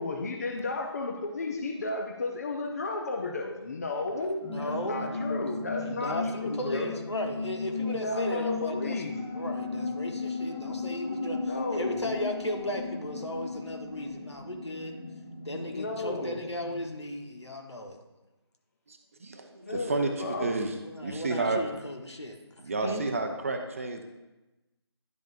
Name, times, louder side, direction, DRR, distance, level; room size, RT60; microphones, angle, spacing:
voice 1, 0.0-6.9 7.8-9.2 11.5-12.1 15.7-16.4 19.6-20.6, left 3 dB, 35° left, 3 dB, 0.6 m, -33 dB
voice 2, 4.0-5.2 5.8-14.9 15.4-18.0 20.4-20.5 20.8-22.4 22.8-23.0, left 1 dB, 75° left, 2 dB, 1.4 m, -36 dB
sound 1, 4.4-16.9, left 3 dB, 10° left, 1.1 m, -36 dB
voice 3, 18.9-20.7 21.0-21.6 22.6-24.0, right 3 dB, 30° right, 5 dB, 0.6 m, -31 dB
10.5 x 5.1 x 2.7 m, 1.0 s
figure-of-eight pair, 155°, 14 cm